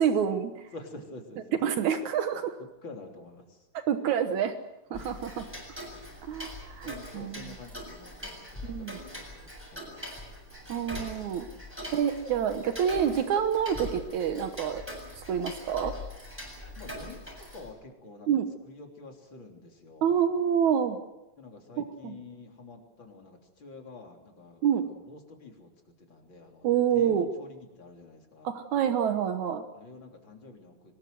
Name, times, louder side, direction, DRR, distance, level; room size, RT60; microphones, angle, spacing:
voice 1, 0.0-0.7 1.6-2.6 3.7-4.6 4.9-5.5 6.2-7.6 8.6-9.0 10.7-11.5 11.9-14.8 15.2-15.9 18.3-18.5 20.0-21.0 21.8-22.2 24.6-24.9 26.6-27.3 28.4-29.6, right 8 dB, 75° right, 8 dB, 2.6 m, -27 dB
voice 2, 0.7-1.6 2.8-3.6 4.9-5.1 5.9-6.1 6.8-8.9 9.1-10.6 11.5-11.6 16.8-18.3 18.7-20.2 21.4-25.7 26.0-26.7 26.9-28.5 29.7-31.0, left 3 dB, 40° left, 2 dB, 4.0 m, -48 dB
Tick-tock, 4.9-17.7, left 1 dB, 5° right, 7.3 m, -42 dB
24.0 x 20.5 x 7.7 m, 1.0 s
omnidirectional pair, 3.4 m